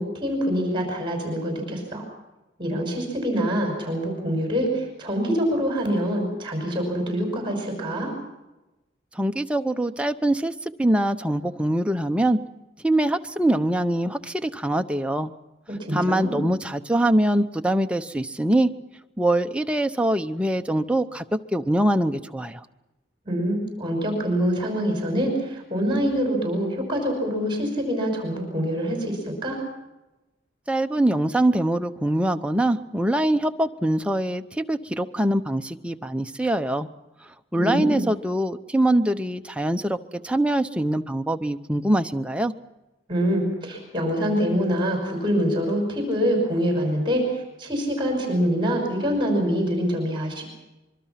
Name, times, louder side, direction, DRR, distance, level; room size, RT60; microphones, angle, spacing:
voice 1, 0.0-2.0 2.6-8.1 15.7-16.4 23.3-29.6 37.6-38.1 43.1-50.4, equal, 25° right, 2 dB, 5.7 m, -25 dB
voice 2, 9.1-10.5 10.8-12.4 12.8-15.3 15.9-18.7 19.2-21.2 21.5-22.6 30.7-36.9 37.5-40.0 40.2-42.5, right 1 dB, 5° right, 6 dB, 0.8 m, -23 dB
24.5 x 23.5 x 5.9 m, 1.0 s
head